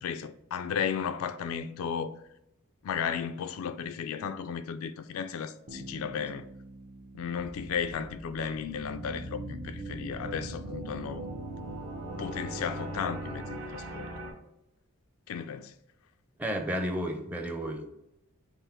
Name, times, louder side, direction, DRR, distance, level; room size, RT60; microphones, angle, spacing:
voice 1, 0.0-2.2 2.8-6.5 7.1-11.3 12.2-14.1 15.3-15.7, left 7 dB, 70° left, 0.3 m, -34 dB
Bass guitar, 5.7-9.4, right 1 dB, 45° right, 0.7 m, -49 dB
sound 1, 7.4-14.3, right 1 dB, 85° right, 1.6 m, -40 dB
Bowed string instrument, 10.1-13.7, right 1 dB, 65° right, 1.0 m, -44 dB
voice 2, 16.4-17.9, equal, 5° right, 0.5 m, -32 dB
5.5 x 2.0 x 4.4 m
head